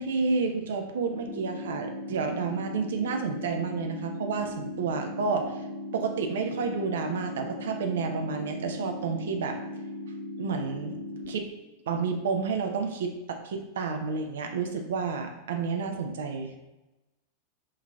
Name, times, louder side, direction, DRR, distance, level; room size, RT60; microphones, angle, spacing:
voice 1, 0.0-5.6 5.9-9.6 10.4-11.0 11.3-11.5 11.9-16.6, right 5 dB, 60° right, 5 dB, 0.3 m, -30 dB
sound 1, 1.3-11.3, left 1 dB, 20° left, 0.5 m, -38 dB
3.7 x 2.7 x 2.3 m, 1.0 s
figure-of-eight pair, 90°, 0 cm